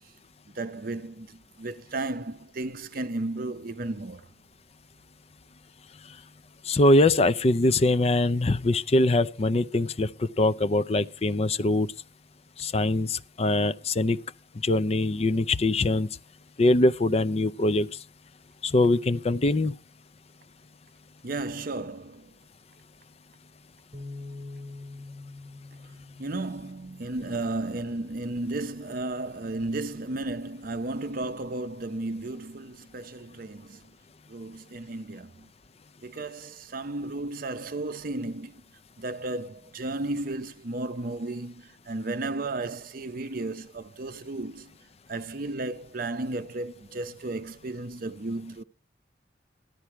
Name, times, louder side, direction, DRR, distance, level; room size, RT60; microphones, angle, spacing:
voice 1, 0.5-4.3 21.2-22.3 26.2-33.8 34.3-35.5 36.0-38.6 39.0-44.7 45.1-48.6, right 2 dB, 55° right, 0.7 m, -34 dB
voice 2, 6.7-11.9 12.6-14.2 14.6-16.1 16.6-17.9 18.6-19.7, left 2 dB, 35° left, 0.5 m, -23 dB
sound 1, 23.9-30.2, left 2 dB, 35° right, 2.3 m, -46 dB
13.5 x 11.5 x 4.5 m
head